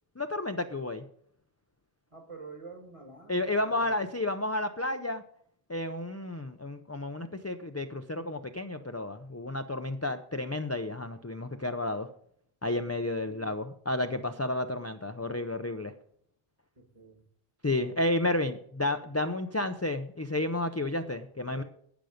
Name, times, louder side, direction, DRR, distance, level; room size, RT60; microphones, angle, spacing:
voice 1, 0.2-1.0 3.3-5.2 5.7-12.1 12.6-15.9 17.6-21.6, left 2 dB, 20° left, 7 dB, 0.5 m, -31 dB
voice 2, 2.1-3.9 13.2-13.5 16.8-17.2 21.6-21.7, right 4 dB, 30° right, 6 dB, 1.8 m, -47 dB
12.0 x 9.2 x 5.1 m, 0.65 s
omnidirectional pair, 1.0 m